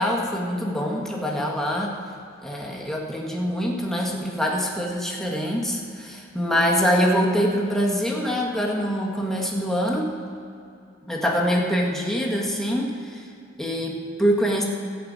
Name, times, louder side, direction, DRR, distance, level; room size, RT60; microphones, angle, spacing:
voice 1, 0.0-1.9 2.4-10.1 11.1-13.2 13.6-14.6, equal, ahead, -2 dB, 1.7 m, -24 dB
14.0 x 6.8 x 8.8 m, 2.5 s
head